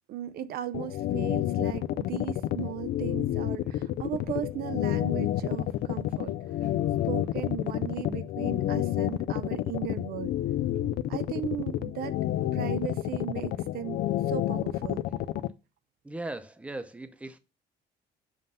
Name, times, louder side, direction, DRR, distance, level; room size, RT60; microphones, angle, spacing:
voice 1, 0.1-6.3 6.6-6.7 7.0-10.3 11.1-12.2 12.5-14.0 14.3-15.0, right 11 dB, 65° right, 0.4 m, -37 dB
sound 1, 0.7-15.5, left 13 dB, 70° left, 0.4 m, -29 dB
voice 2, 16.0-17.4, right 2 dB, 5° right, 0.7 m, -39 dB
7.5 x 2.6 x 5.4 m
cardioid pair, 110°, 17 cm